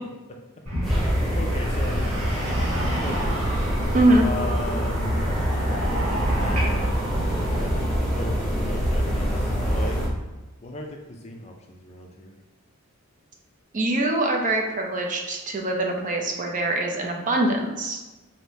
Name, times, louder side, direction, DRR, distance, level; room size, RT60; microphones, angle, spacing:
sound 1, 0.7-7.9, equal, 85° right, 1.4 m, -30 dB
sound 2, 0.8-10.1, equal, ahead, 0.9 m, -25 dB
voice 1, 1.3-2.1 3.0-3.4 4.2-5.2 6.3-7.8 8.1-10.0 10.6-12.3, left 2 dB, 30° left, 2 dB, 0.4 m, -37 dB
voice 2, 3.9-4.3 13.7-18.0, right 1 dB, 35° right, 1 dB, 0.5 m, -23 dB
3.3 x 2.6 x 4.1 m, 1.1 s
head